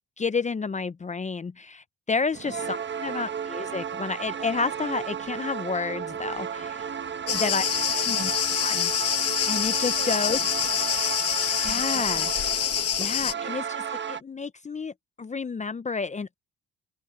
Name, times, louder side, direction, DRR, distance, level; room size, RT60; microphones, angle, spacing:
voice 1, 0.2-6.9 7.4-7.6 8.1-8.3 8.6-8.9 9.5-10.4 11.6-12.3 13.0-16.4, left 4 dB, 25° left, 0.6 m, -30 dB
sound 1, 2.3-14.2, right 8 dB, 40° right, 1.2 m, -33 dB
Cricket, 7.3-13.3, left 9 dB, 55° left, 1.1 m, -26 dB
voice 2, 7.3-8.3 10.0-12.4, right 12 dB, 75° right, 6.2 m, -45 dB
open air
cardioid pair, 90°, 30 cm